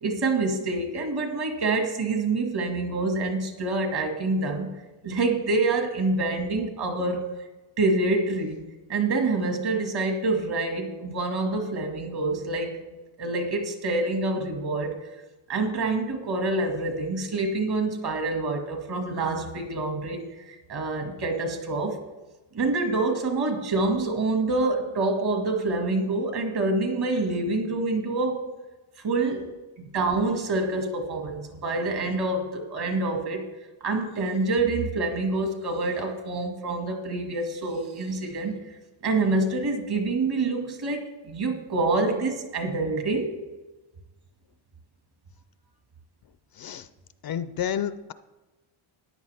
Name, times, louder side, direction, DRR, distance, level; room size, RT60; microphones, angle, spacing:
voice 1, 0.0-4.7 5.0-7.2 7.8-8.6 8.9-12.8 13.2-15.0 15.5-22.0 22.5-28.5 29.0-29.5 29.8-33.5 33.8-38.5 39.0-43.3, right 3 dB, 50° right, 4 dB, 2.0 m, -26 dB
voice 2, 46.5-46.9 47.2-48.1, left 9 dB, 50° left, 13 dB, 0.5 m, -30 dB
14.0 x 10.0 x 3.4 m, 1.1 s
cardioid pair, 130°, 49 cm